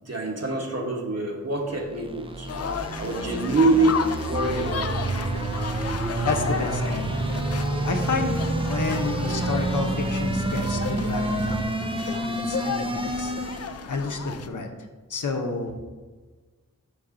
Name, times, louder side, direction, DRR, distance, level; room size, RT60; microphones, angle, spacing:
voice 1, 0.0-2.5 3.0-5.1, right 2 dB, 50° right, -1 dB, 1.3 m, -25 dB
sound 1, 1.6-13.8, right 1 dB, 15° right, 0.5 m, -30 dB
sound 2, 2.5-14.5, left 6 dB, 50° left, 0.4 m, -34 dB
sound 3, 4.3-11.6, right 3 dB, 85° right, 1.2 m, -31 dB
voice 2, 6.2-7.1 7.8-13.3 13.9-14.7 15.1-15.9, left 3 dB, 70° left, 4 dB, 0.8 m, -30 dB
5.5 x 5.5 x 3.8 m, 1.3 s
wide cardioid pair, 50°, 32 cm